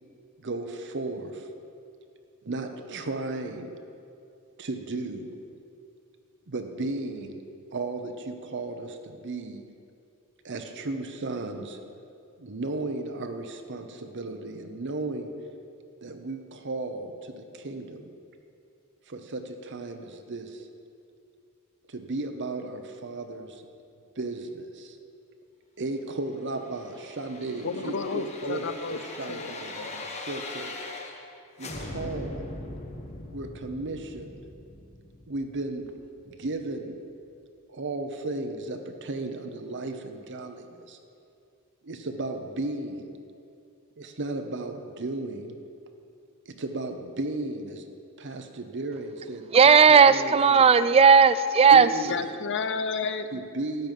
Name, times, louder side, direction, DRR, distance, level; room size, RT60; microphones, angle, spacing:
voice 1, 0.4-1.5 2.4-3.8 4.6-5.4 6.5-7.4 7.7-9.7 10.4-11.8 12.4-15.4 16.0-18.1 19.1-20.7 21.9-23.6 24.2-25.0 25.8-30.8 31.6-32.5 33.3-34.4 35.3-37.1 37.7-41.0 41.8-43.1 44.0-45.6 46.5-47.9 48.2-50.7 51.7-52.2 53.3-53.9, right 2 dB, 55° right, 0.9 m, -35 dB
sound 1, 26.6-31.3 31.6-36.5 36.8-36.9, left 2 dB, 30° left, 1.1 m, -41 dB
voice 2, 27.6-29.0 29.3-29.5 52.1-53.3, left 4 dB, 55° left, 0.7 m, -31 dB
voice 3, 49.5-51.9, right 6 dB, 25° right, 0.3 m, -16 dB
13.5 x 5.4 x 9.2 m
head